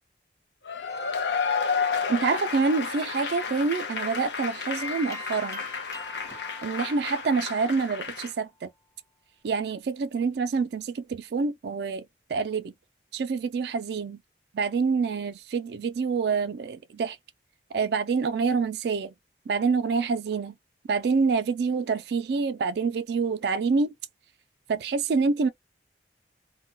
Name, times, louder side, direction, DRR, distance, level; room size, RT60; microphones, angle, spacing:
Cheering / Applause / Crowd, 0.7-8.3, left 5 dB, 75° left, 0.6 m, -31 dB
voice 1, 2.1-5.6 6.6-8.7 9.4-12.7 13.1-14.2 14.5-17.2 17.7-19.1 19.5-20.5 20.9-23.9 24.7-25.5, right 4 dB, 65° right, 0.3 m, -27 dB
sound 1, 4.8-8.3, left 2 dB, 15° left, 0.7 m, -43 dB
2.2 x 2.2 x 3.8 m
head